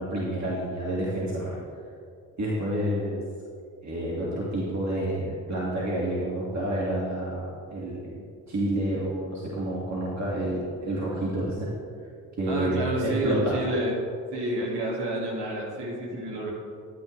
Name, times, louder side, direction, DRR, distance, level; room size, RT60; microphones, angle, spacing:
voice 1, 0.0-1.6 2.4-3.2 3.8-11.7 12.4-13.6, right 1 dB, 40° right, -6 dB, 2.3 m, -29 dB
voice 2, 12.5-13.9 14.3-16.5, right 1 dB, 75° right, -3 dB, 2.3 m, -29 dB
11.0 x 9.3 x 3.3 m, 2.4 s
hypercardioid pair, 45°, 41 cm